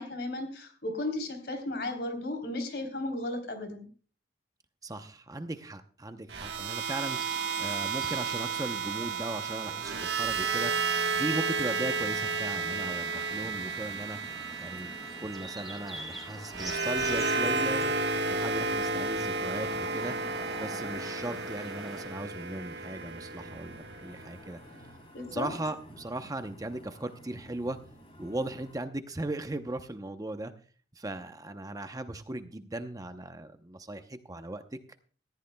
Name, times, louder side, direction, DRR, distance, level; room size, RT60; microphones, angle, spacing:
voice 1, 0.0-3.9 25.1-25.5, left 1 dB, 65° left, 5 dB, 3.4 m, -35 dB
voice 2, 4.8-7.2 7.6-14.2 14.6-17.9 18.3-20.2 20.6-24.6 25.3-27.8 28.2-30.5 31.0-34.8, right 1 dB, 20° right, 8 dB, 0.7 m, -37 dB
sound 1, 6.3-24.5, right 4 dB, 75° right, 1.2 m, -32 dB
sound 2, 7.1-22.0, equal, ahead, 4.9 m, -47 dB
sound 3, 12.5-28.8, equal, 35° left, 3.5 m, -52 dB
19.5 x 14.5 x 2.2 m, 0.41 s
head